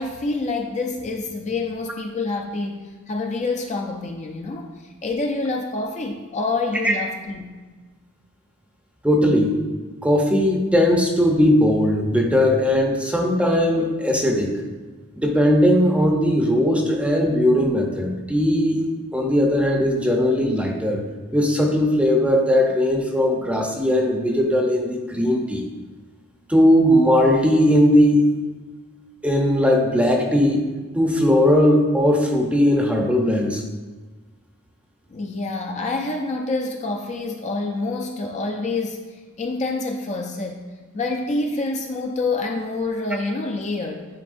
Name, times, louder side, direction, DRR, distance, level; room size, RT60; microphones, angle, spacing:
voice 1, 0.0-2.8 3.1-7.5 35.1-40.6 40.9-44.1, left 3 dB, 35° left, 2 dB, 0.4 m, -27 dB
voice 2, 9.0-9.6 10.0-14.6 15.1-18.8 19.1-21.0 21.3-25.7 26.5-28.3 29.2-30.6 30.9-33.6, left 1 dB, 5° right, 1 dB, 0.7 m, -18 dB
9.6 x 4.2 x 2.5 m, 1.3 s
head